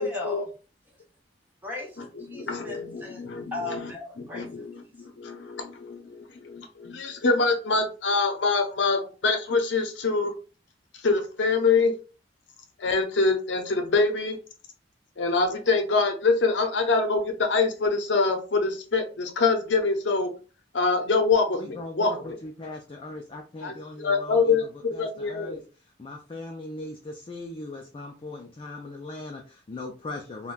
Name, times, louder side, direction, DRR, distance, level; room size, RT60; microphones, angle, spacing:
voice 1, 0.0-0.5 1.6-1.9 2.3-3.2 3.5-5.1, left 2 dB, 10° right, 1.0 m, -37 dB
voice 2, 2.4-3.4 4.3-4.6 5.0-10.3 11.0-11.9 12.8-14.4 15.2-20.3 20.7-22.4 23.6-25.6, left 4 dB, 80° left, 0.6 m, -25 dB
voice 3, 21.5-30.5, left 2 dB, 30° left, 0.4 m, -39 dB
3.6 x 2.2 x 2.4 m
head